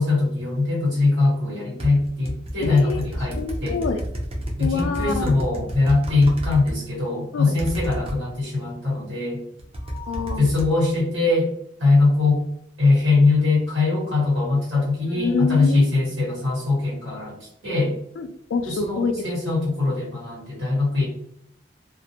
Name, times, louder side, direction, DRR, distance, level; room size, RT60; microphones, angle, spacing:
voice 1, 0.0-3.8 4.6-9.4 10.4-11.5 11.8-12.4 12.8-17.4 17.6-17.9 18.6-21.1, left 3 dB, 90° right, -5 dB, 1.3 m, -21 dB
sound 1, 1.8-6.7 7.6-8.2 9.6-10.7, equal, 30° right, 0.5 m, -29 dB
voice 2, 2.6-3.0 3.4-4.0 4.6-5.3 7.3-7.5 9.9-10.5 15.1-15.9 18.2-19.1, left 4 dB, 90° left, 8 dB, 0.3 m, -26 dB
2.4 x 2.1 x 2.8 m, 0.71 s
head